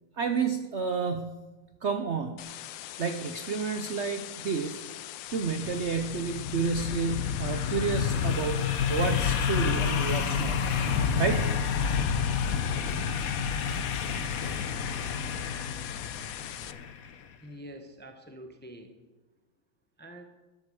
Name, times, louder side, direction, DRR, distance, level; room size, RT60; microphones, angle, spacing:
voice 1, 0.2-1.4 1.8-2.5 3.0-4.8 5.3-11.5, right 5 dB, 65° right, 7 dB, 0.6 m, -30 dB
sound 1, 2.4-16.7, left 14 dB, 75° left, 1.2 m, -42 dB
sound 2, 5.5-17.1, left 6 dB, 55° left, 1.1 m, -29 dB
voice 2, 17.4-18.9 20.0-20.2, equal, 10° left, 5 dB, 0.5 m, -46 dB
13.0 x 8.2 x 7.0 m, 1.2 s
omnidirectional pair, 2.2 m